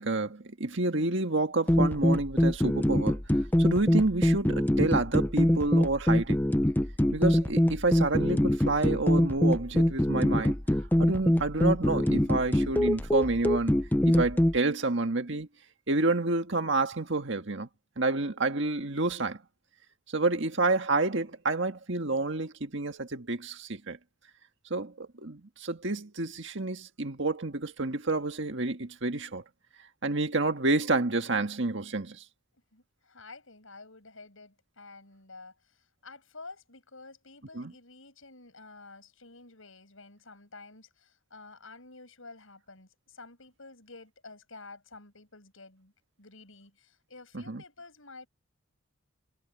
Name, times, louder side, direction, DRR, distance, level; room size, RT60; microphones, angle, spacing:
voice 1, 0.0-6.4 7.1-10.6 11.0-13.7 14.1-15.5 15.9-17.7 18.0-19.4 20.1-24.0 24.7-29.4 30.0-32.2 37.5-37.7 47.3-47.6, right 2 dB, 55° right, 1.8 m, -29 dB
sound 1, 1.7-14.6, left 1 dB, 10° left, 0.5 m, -24 dB
voice 2, 32.5-45.9 46.2-48.3, left 3 dB, 70° left, 6.6 m, -50 dB
head